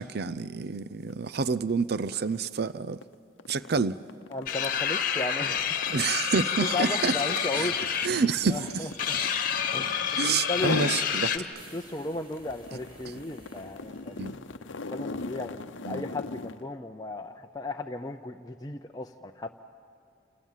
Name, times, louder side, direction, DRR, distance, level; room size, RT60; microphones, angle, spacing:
voice 1, 0.0-3.0 3.5-4.0 5.9-7.1 7.5-7.7 8.0-8.9 9.2-9.3 10.2-11.4 14.2-14.3 15.8-16.0, right 5 dB, 55° right, 0.6 m, -28 dB
sound 1, 1.0-1.2 1.6-10.0 10.5-11.0 11.5-16.6, left 3 dB, 75° left, 0.8 m, -39 dB
voice 2, 4.3-5.6 6.7-7.7 8.5-9.2 9.7-10.8 11.3-11.4 11.7-14.1 14.9-19.5, left 2 dB, 20° left, 0.6 m, -35 dB
sound 2, 4.5-11.4, left 8 dB, 45° left, 1.4 m, -29 dB
sound 3, 6.8-14.3, equal, 30° right, 4.6 m, -56 dB
29.0 x 27.0 x 7.4 m
head